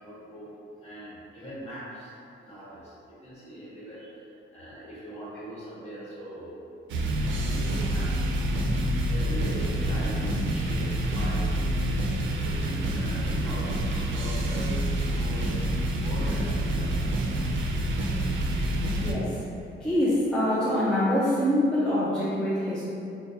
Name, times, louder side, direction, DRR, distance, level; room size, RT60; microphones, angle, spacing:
voice 1, 0.0-2.1 2.4-6.6 7.2-8.1 9.1-11.9 12.4-17.2, equal, 30° left, -9 dB, 1.2 m, -41 dB
sound 1, 6.9-19.1, right 1 dB, 65° right, 0.4 m, -27 dB
voice 2, 19.0-19.4 19.8-22.8, left 1 dB, 5° left, -9 dB, 0.4 m, -25 dB
5.8 x 2.2 x 2.7 m, 2.6 s
wide cardioid pair, 170°, 21 cm